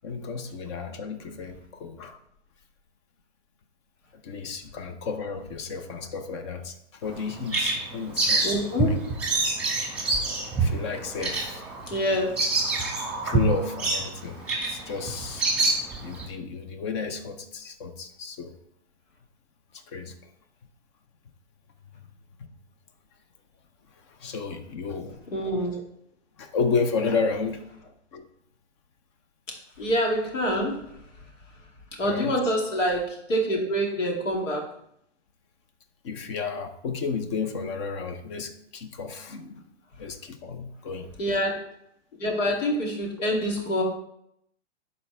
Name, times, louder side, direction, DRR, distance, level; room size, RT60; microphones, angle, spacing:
voice 1, 0.0-2.2 4.1-8.5 8.8-9.0 10.6-11.7 13.2-15.5 16.0-18.6 19.7-20.1 24.2-25.2 26.4-27.6 28.1-28.2 32.0-32.4 36.0-39.7 40.0-41.1, left 5 dB, 25° left, 9 dB, 0.4 m, -32 dB
Bird vocalization bird call bird song, 7.1-16.3, right 3 dB, 5° right, 1.3 m, -27 dB
voice 2, 8.4-9.1 11.9-12.3 25.3-25.8 29.8-30.9 32.0-34.7 41.2-41.7 42.2-43.8, equal, 80° left, 0 dB, 2.4 m, -26 dB
11.0 x 4.2 x 3.3 m, 0.74 s
hypercardioid pair, 145°, 37 cm